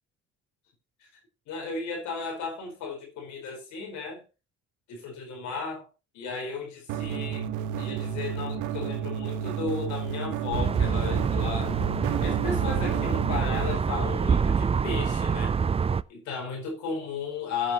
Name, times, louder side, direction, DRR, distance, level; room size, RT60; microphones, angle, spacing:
voice 1, 1.5-4.2 4.9-5.9 6.1-7.5 7.8-11.8 12.2-15.6 16.1-17.7, left 4 dB, 75° left, 4.4 m, -34 dB
sound 1, 6.9-13.7, right 8 dB, 80° right, 1.4 m, -32 dB
sound 2, 10.5-16.0, right 6 dB, 20° right, 0.4 m, -26 dB
15.5 x 8.7 x 2.9 m
supercardioid pair, 75°, 29 cm